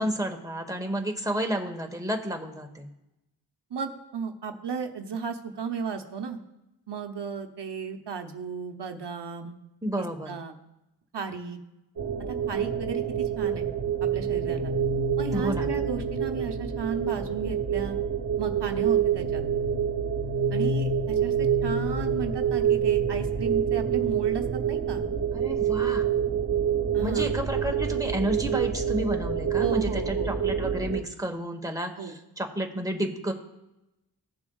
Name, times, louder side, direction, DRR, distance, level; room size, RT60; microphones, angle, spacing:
voice 1, 0.0-2.9 9.8-10.3 15.3-15.7 25.3-26.0 27.0-33.3, right 1 dB, 10° right, 4 dB, 1.2 m, -31 dB
voice 2, 3.7-6.4 6.9-9.6 10.0-10.6 11.1-11.6 12.3-13.7 14.0-14.7 15.2-18.0 18.4-19.4 20.5-25.1 26.9-27.3 29.6-30.3 32.0-32.1, right 5 dB, 90° right, 5 dB, 0.8 m, -34 dB
sound 1, 12.0-31.0, right 7 dB, 50° right, 1.0 m, -27 dB
16.0 x 7.0 x 2.4 m, 0.92 s
wide cardioid pair, 45°, 40 cm